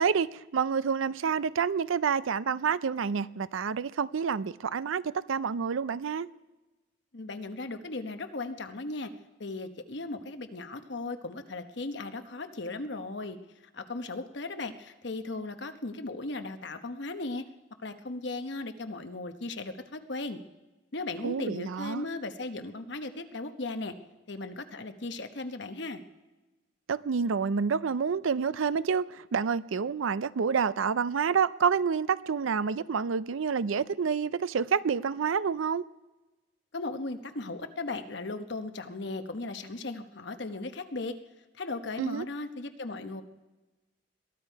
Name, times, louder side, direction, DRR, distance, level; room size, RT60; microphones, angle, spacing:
voice 1, 0.0-6.3 21.2-22.0 26.9-35.8 42.0-42.2, right 6 dB, 80° right, 0.5 m, -28 dB
voice 2, 7.1-9.1 9.4-13.4 13.7-17.4 17.8-20.4 20.9-23.9 24.3-26.0 36.7-41.1 41.6-43.2, left 2 dB, 60° left, 1.0 m, -37 dB
22.0 x 14.0 x 4.6 m
head